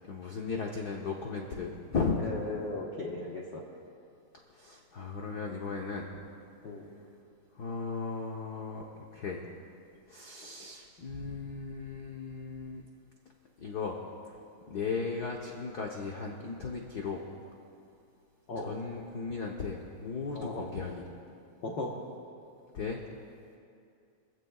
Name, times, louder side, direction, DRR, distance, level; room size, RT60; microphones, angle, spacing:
voice 1, 0.1-2.2 4.5-6.1 7.5-9.4 10.1-12.8 13.6-14.0 14.7-17.2 18.6-21.0 22.7-23.0, left 4 dB, 80° left, 0 dB, 0.9 m, -36 dB
voice 2, 2.2-3.6 6.6-6.9 18.5-18.7 20.3-20.6 21.6-22.0, left 2 dB, 55° left, -3 dB, 1.4 m, -37 dB
24.5 x 15.5 x 2.4 m, 2.4 s
omnidirectional pair, 3.3 m